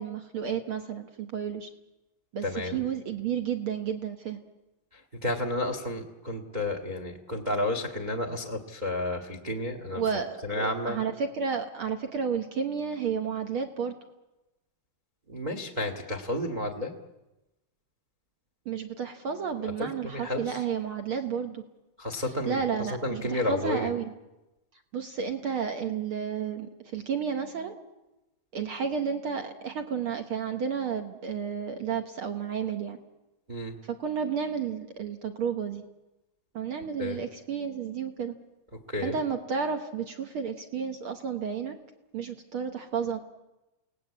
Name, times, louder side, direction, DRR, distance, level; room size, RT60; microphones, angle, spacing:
voice 1, 0.0-1.7 2.3-2.5 2.7-4.4 9.9-13.9 18.6-21.6 22.4-24.1 24.9-27.7 28.5-33.0 33.8-35.8 36.5-38.3 39.0-41.8 42.1-43.2, right 7 dB, 65° right, 6 dB, 1.3 m, -31 dB
voice 2, 2.4-2.8 4.9-10.0 10.4-11.0 15.3-16.9 19.6-20.6 22.0-23.9 33.5-33.7 37.0-37.2 38.9-39.2, left 1 dB, 40° right, 6 dB, 0.6 m, -31 dB
29.5 x 18.5 x 8.5 m, 1.0 s
omnidirectional pair, 4.3 m